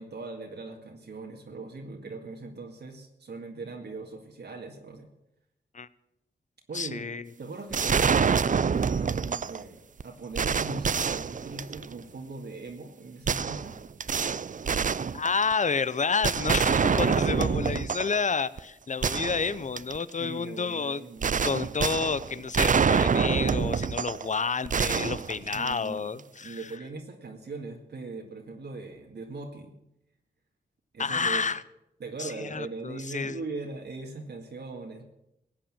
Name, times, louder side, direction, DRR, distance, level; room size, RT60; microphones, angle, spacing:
voice 1, 0.0-5.1 6.7-7.1 7.4-13.8 20.2-21.4 25.5-29.8 30.9-31.4 32.0-35.0, right 3 dB, 75° right, 1 dB, 2.0 m, -40 dB
voice 2, 6.7-7.3 15.1-21.0 21.4-26.7 31.0-31.6 32.2-33.4, left 5 dB, 45° left, 17 dB, 0.8 m, -30 dB
sound 1, 7.7-9.6 10.0-10.1 10.4-12.0 13.3-15.7 16.2-18.2 18.6-18.7 19.0-20.0 21.2-24.3 24.7-26.0, right 6 dB, 45° right, 0.5 m, -26 dB
16.5 x 8.8 x 7.4 m, 0.84 s
cardioid pair, 55°, 18 cm